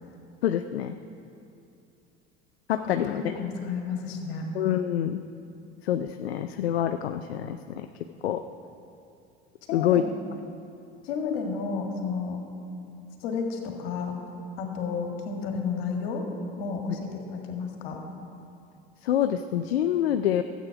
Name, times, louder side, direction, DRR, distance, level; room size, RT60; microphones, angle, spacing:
voice 1, 0.4-1.0 2.7-3.4 4.5-5.2 5.8-7.6 8.2-8.4 9.7-10.0 19.0-20.4, left 11 dB, 90° left, 8 dB, 0.5 m, -26 dB
voice 2, 2.8-4.5 9.7-10.1 11.0-12.4 13.2-14.2 14.6-16.2 16.6-18.0, left 5 dB, 70° left, 2 dB, 1.9 m, -32 dB
13.0 x 8.5 x 5.9 m, 2.6 s
hypercardioid pair, 75°, 30 cm